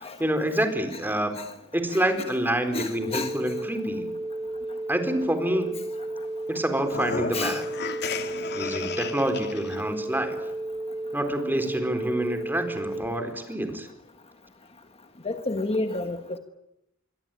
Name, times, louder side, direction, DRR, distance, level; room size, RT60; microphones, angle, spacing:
voice 1, 0.2-1.3 1.7-4.1 4.9-5.8 6.5-7.6 8.5-10.4 11.1-13.9, right 1 dB, 10° right, 7 dB, 4.2 m, -27 dB
voice 2, 1.9-2.3 2.7-3.3 7.3-7.6 15.2-16.4, left 2 dB, 30° left, 7 dB, 1.5 m, -30 dB
sound 1, 3.0-13.0, right 1 dB, 75° right, 6.3 m, -33 dB
sound 2, 6.8-9.8, left 5 dB, 50° left, 2.3 m, -33 dB
26.5 x 23.0 x 9.2 m, 0.84 s
head